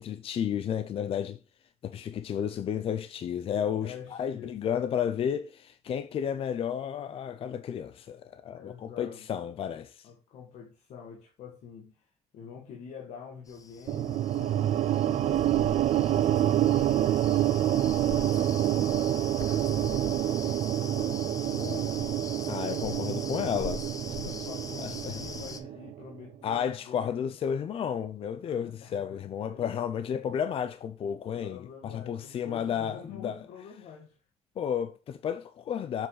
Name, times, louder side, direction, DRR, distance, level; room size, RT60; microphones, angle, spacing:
voice 1, 0.0-1.4 1.8-10.1 22.5-23.8 24.2-24.3 24.8-25.1 26.4-33.3 34.6-36.1, left 8 dB, 55° left, 0.6 m, -32 dB
voice 2, 3.8-4.6 8.5-9.3 10.0-23.7 24.2-27.4 28.4-29.8 31.3-34.2, left 6 dB, 85° left, 1.9 m, -47 dB
sound 1, 13.5-25.6, left 4 dB, 30° left, 0.9 m, -42 dB
sound 2, 13.9-26.1, right 12 dB, 65° right, 0.4 m, -27 dB
7.3 x 6.2 x 4.0 m
cardioid pair, 140°, 12 cm